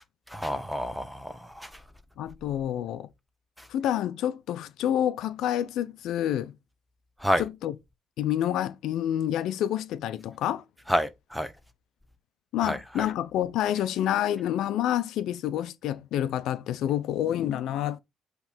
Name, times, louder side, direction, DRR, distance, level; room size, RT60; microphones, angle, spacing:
voice 1, 0.3-1.7 7.2-7.4 10.9-11.5 12.6-12.8, equal, ahead, 1.1 m, -28 dB
voice 2, 2.2-3.1 3.7-6.5 7.4-7.7 8.2-10.6 12.5-18.0, left 11 dB, 85° left, 0.6 m, -28 dB
8.0 x 3.3 x 4.3 m
cardioid pair, 90°, 0 cm